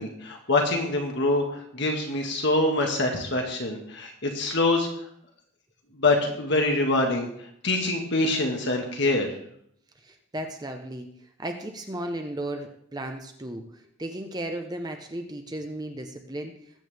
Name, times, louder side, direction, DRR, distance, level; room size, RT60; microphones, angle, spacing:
voice 1, 0.0-4.9 6.0-7.3 7.6-9.3, left 2 dB, 55° left, 2 dB, 1.7 m, -25 dB
voice 2, 10.0-11.1 11.4-16.6, right 1 dB, 20° right, 5 dB, 0.8 m, -35 dB
20.0 x 8.4 x 3.5 m, 0.69 s
head